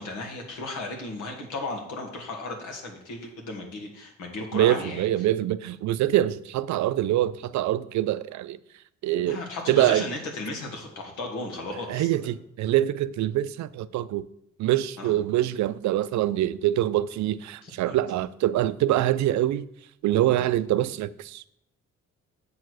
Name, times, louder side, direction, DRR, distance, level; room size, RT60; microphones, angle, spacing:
voice 1, 0.0-5.1 9.3-12.1 15.0-15.1 17.6-18.0, left 2 dB, 80° left, 1.9 m, -35 dB
voice 2, 4.5-8.6 9.0-9.4 9.7-10.1 11.9-14.3 14.6-19.7 20.0-21.5, right 13 dB, 70° right, 0.4 m, -24 dB
7.6 x 4.6 x 6.2 m
cardioid pair, 90°, 30 cm